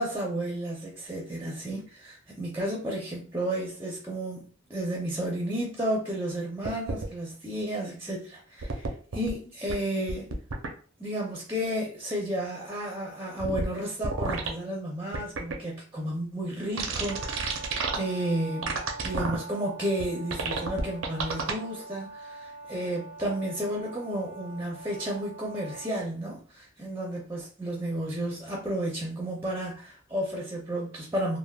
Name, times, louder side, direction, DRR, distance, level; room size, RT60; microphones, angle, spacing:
voice 1, 0.0-8.9 9.1-10.3 11.0-17.5 17.9-31.4, right 1 dB, 10° right, -2 dB, 0.4 m, -32 dB
sound 1, 6.6-7.1 8.6-9.3 9.7-9.8 10.1-10.7 13.4-13.7 14.0-14.5 15.1-15.6 16.8-18.0 18.6-19.4 20.0-20.1 20.3-21.5, right 4 dB, 75° right, 0.5 m, -30 dB
Brass instrument, 17.0-26.0, right 3 dB, 60° left, 0.9 m, -44 dB
3.3 x 2.0 x 2.2 m, 0.41 s
head